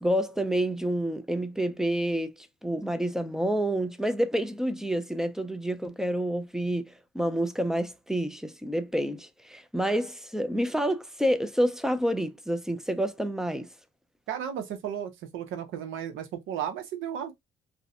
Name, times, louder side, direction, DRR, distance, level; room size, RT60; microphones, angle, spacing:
voice 1, 0.0-13.7, equal, ahead, 0.4 m, -28 dB
voice 2, 14.3-17.3, right 9 dB, 85° right, 0.7 m, -34 dB
2.6 x 2.1 x 2.4 m
cardioid pair, 90°, 20 cm